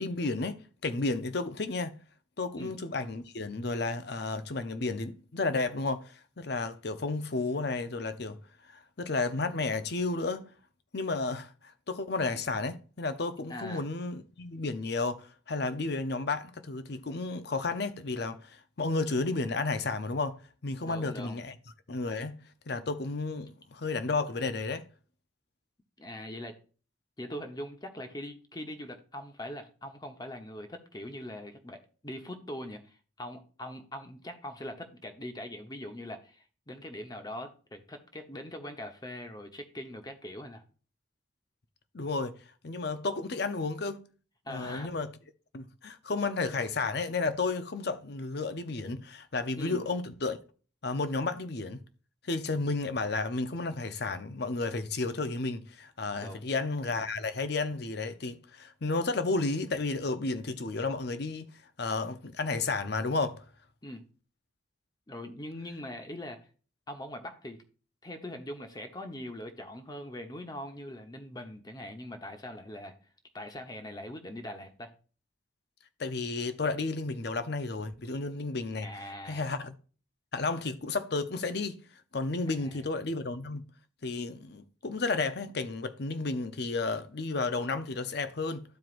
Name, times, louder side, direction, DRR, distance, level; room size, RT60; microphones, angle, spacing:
voice 1, 0.0-2.0 2.4-8.4 8.7-10.4 10.9-11.5 11.9-20.4 20.6-21.6 21.9-22.4 22.7-24.8 41.9-42.3 42.6-44.0 44.5-45.1 45.5-50.4 50.8-51.8 52.2-61.5 61.8-63.4 76.0-78.9 79.3-79.7 80.3-81.8 82.1-83.6 84.0-88.6, left 3 dB, 60° left, 0.7 m, -32 dB
voice 2, 13.5-13.8 20.8-21.4 26.0-26.6 27.2-40.6 44.4-44.9 49.6-49.8 56.2-56.5 63.8-64.0 65.1-66.5 66.9-67.6 68.0-72.9 73.3-74.9 78.8-79.4 82.5-82.9, left 1 dB, 20° left, 0.9 m, -42 dB
12.5 x 4.6 x 2.5 m
head